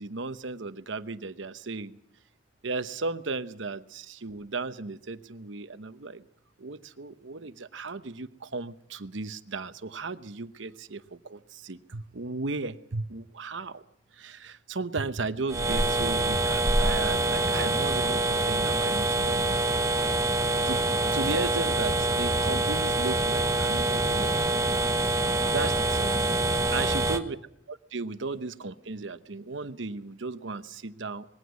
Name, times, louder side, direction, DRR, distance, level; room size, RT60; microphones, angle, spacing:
voice 1, 0.0-2.0 2.6-6.2 6.6-13.8 14.2-19.7 20.6-20.8 21.1-24.5 25.5-26.1 26.7-27.4 27.7-31.3, right 3 dB, 75° right, 12 dB, 1.0 m, -35 dB
sound 1, 15.5-27.2, right 2 dB, 15° right, 1.0 m, -25 dB
21.0 x 16.0 x 8.2 m, 0.73 s
head